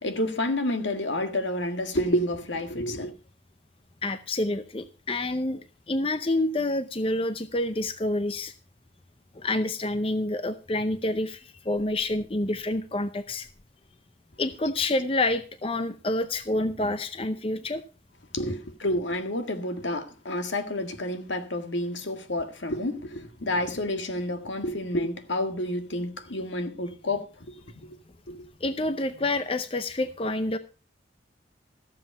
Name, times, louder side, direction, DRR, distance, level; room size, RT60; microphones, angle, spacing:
voice 1, 0.0-3.1 18.3-27.5 27.8-28.0 28.3-28.5, left 1 dB, 80° left, 1.8 m, -29 dB
voice 2, 4.0-8.5 9.3-13.5 14.4-17.8 18.4-18.5 28.6-30.6, left 2 dB, 30° left, 0.6 m, -28 dB
14.0 x 7.7 x 5.5 m
head